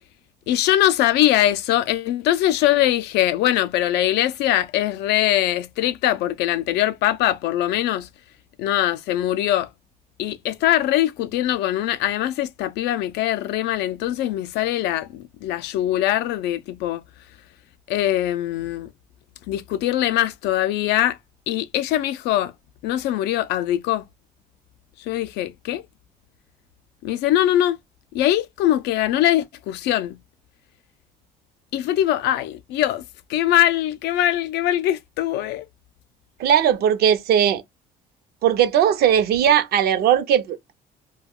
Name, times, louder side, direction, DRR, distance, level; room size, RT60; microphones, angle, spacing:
voice 1, 0.5-8.1 8.6-9.7 10.2-17.0 17.9-18.9 19.5-21.2 21.5-22.5 22.8-24.0 25.0-25.8 27.0-27.8 28.1-30.2 31.7-33.0 33.3-35.7, left 13 dB, 85° left, 0.4 m, -22 dB
voice 2, 36.4-37.6 38.4-40.7, right 9 dB, 70° right, 0.6 m, -18 dB
2.3 x 2.2 x 3.5 m
cardioid pair, 110°, 17 cm